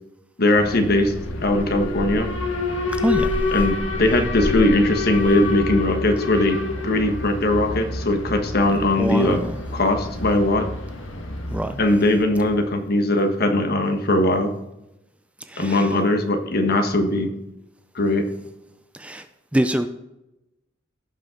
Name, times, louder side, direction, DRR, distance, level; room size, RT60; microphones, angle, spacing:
voice 1, 0.4-1.1 1.4-2.3 3.5-9.4 9.7-10.7 11.8-14.5 15.6-17.3 17.9-18.2, left 1 dB, 55° left, 6 dB, 1.4 m, -20 dB
Alarm, 0.6-12.6, left 3 dB, 75° left, 1.6 m, -28 dB
voice 2, 9.0-9.6 11.5-11.8 15.5-15.9 18.9-19.3 19.5-19.9, right 1 dB, 5° right, 9 dB, 0.4 m, -24 dB
16.5 x 5.7 x 3.8 m, 0.92 s
head